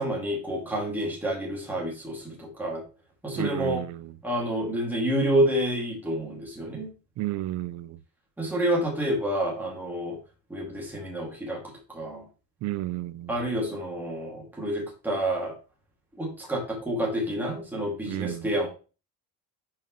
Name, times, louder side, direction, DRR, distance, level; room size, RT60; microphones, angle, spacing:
voice 1, 0.0-2.8 3.2-3.8 4.2-6.9 8.4-10.2 10.5-11.6 11.9-12.3 13.3-15.6 16.2-18.7, right 1 dB, 5° right, 2.2 m, -28 dB
voice 2, 3.3-4.1 7.2-8.0 12.6-13.3 18.1-18.5, right 16 dB, 50° right, 0.4 m, -32 dB
10.5 x 4.7 x 3.0 m
cardioid pair, 180°, 38 cm